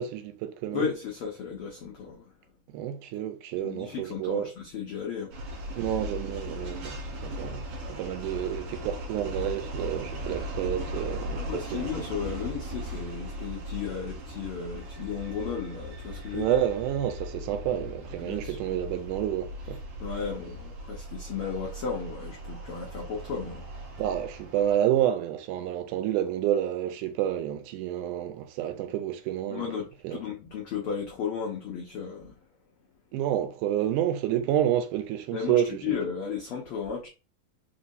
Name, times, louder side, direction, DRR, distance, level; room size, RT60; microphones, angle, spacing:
voice 1, 0.0-0.9 2.7-4.5 5.8-11.9 16.3-19.8 24.0-29.7 30.0-30.2 33.1-36.0, right 11 dB, 85° right, 2.1 m, -29 dB
voice 2, 0.7-2.3 3.6-5.3 11.4-16.6 18.2-18.6 20.0-23.6 29.5-32.3 35.3-37.1, left 6 dB, 85° left, 1.2 m, -34 dB
sound 1, 5.3-24.7, equal, 60° right, 1.7 m, -38 dB
4.9 x 3.0 x 2.7 m
omnidirectional pair, 3.6 m